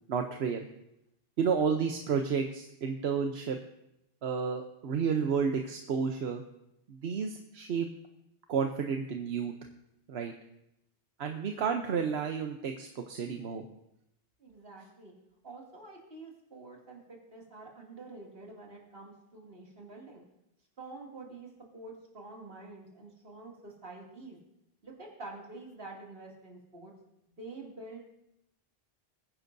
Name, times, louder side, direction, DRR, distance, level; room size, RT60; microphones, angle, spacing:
voice 1, 0.1-0.7 1.4-3.6 4.2-6.4 6.9-7.9 8.5-9.5 10.1-10.3 11.2-13.7, right 6 dB, 85° right, 4 dB, 1.1 m, -31 dB
voice 2, 14.4-15.1 15.4-20.2 20.8-24.4 24.8-26.9 27.4-28.0, right 3 dB, 65° right, -2 dB, 2.8 m, -47 dB
22.0 x 9.8 x 2.7 m, 0.82 s
omnidirectional pair, 1.0 m